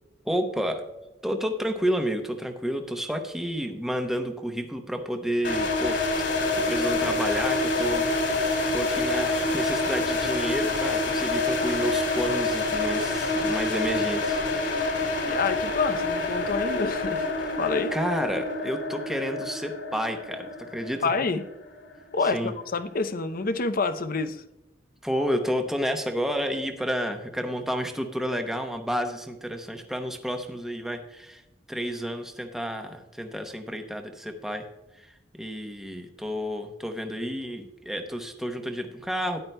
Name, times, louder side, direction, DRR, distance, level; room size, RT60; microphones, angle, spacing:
voice 1, 0.2-0.9 1.2-6.0 6.7-14.4 17.9-21.1 22.2-22.5 25.0-31.4 31.7-34.6 34.9-39.4, equal, ahead, 4 dB, 0.8 m, -30 dB
sound 1, 5.4-22.3, left 2 dB, 80° left, 3.1 m, -27 dB
voice 2, 15.2-17.3 17.6-17.9 21.0-21.4 22.1-22.4 22.7-24.4, left 4 dB, 50° left, 11 dB, 0.6 m, -27 dB
13.5 x 10.5 x 2.2 m, 0.98 s
head